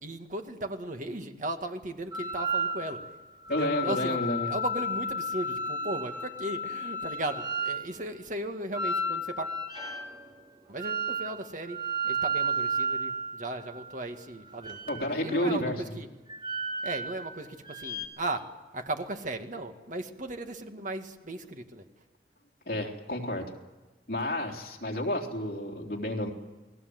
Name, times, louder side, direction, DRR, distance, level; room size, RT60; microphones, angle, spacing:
voice 1, 0.0-3.0 3.6-4.2 4.5-9.5 10.7-11.8 12.0-16.1 16.8-18.4 18.7-21.8, right 1 dB, 45° right, 6 dB, 2.1 m, -36 dB
sound 1, 2.1-3.1 3.4-7.9 8.7-10.1 10.8-11.4 11.7-13.9 14.5-15.4 16.3-17.3 17.7-18.1, right 1 dB, 25° right, 3.2 m, -32 dB
voice 2, 3.5-4.5 14.9-15.9 22.7-23.5 24.1-26.3, left 1 dB, 60° left, 2 dB, 3.5 m, -30 dB
29.0 x 20.5 x 8.0 m, 1.2 s
head